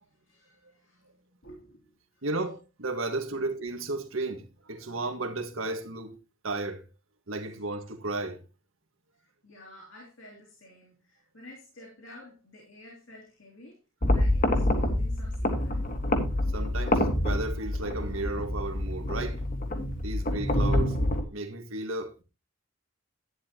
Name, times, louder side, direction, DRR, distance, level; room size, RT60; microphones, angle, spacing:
voice 1, 0.3-1.0 1.4-1.9 3.3-3.4 9.4-13.8 14.1-15.8, left 1 dB, 70° left, 3.2 m, -50 dB
voice 2, 2.2-6.2 6.4-6.8 7.3-8.4 16.5-19.4 20.0-21.0 21.3-22.2, right 2 dB, 85° right, 1.7 m, -34 dB
sound 1, 14.0-21.2, left 1 dB, 45° left, 1.8 m, -27 dB
11.5 x 10.0 x 2.9 m
head